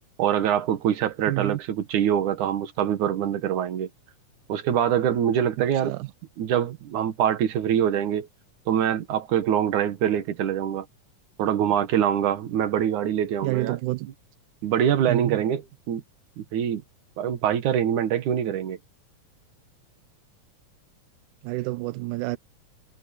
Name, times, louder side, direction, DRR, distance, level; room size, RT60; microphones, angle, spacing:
voice 1, 0.2-3.9 4.5-5.9 6.4-8.3 8.7-10.9 11.4-13.8 14.6-15.6 15.9-16.0 16.4-16.8 17.2-18.8, right 9 dB, 65° right, 2.8 m, -24 dB
voice 2, 1.3-1.6 5.8-6.1 13.4-14.1 15.1-15.4 21.4-22.4, right 20 dB, 80° right, 1.9 m, -28 dB
omnidirectional pair, 4.0 m